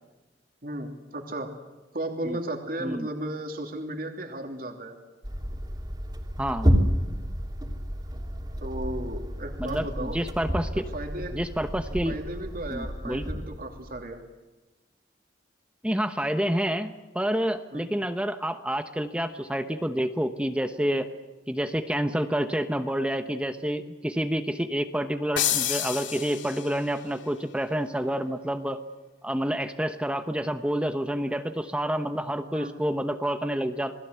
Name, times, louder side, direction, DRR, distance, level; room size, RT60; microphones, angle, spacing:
voice 1, 0.6-1.5 1.9-5.0 8.6-10.2 10.9-11.3 12.1-14.2 17.7-17.9 32.5-32.7, right 1 dB, 50° right, 3 dB, 3.0 m, -35 dB
sound 1, 5.2-13.9, equal, 20° right, 3.3 m, -30 dB
voice 2, 9.6-10.8 11.3-12.1 12.7-13.3 15.8-21.1 21.5-28.8 29.2-34.0, equal, 5° right, 7 dB, 1.0 m, -28 dB
sound 2, 25.4-27.0, left 10 dB, 85° left, 2.8 m, -29 dB
28.0 x 20.5 x 8.2 m, 1.1 s
head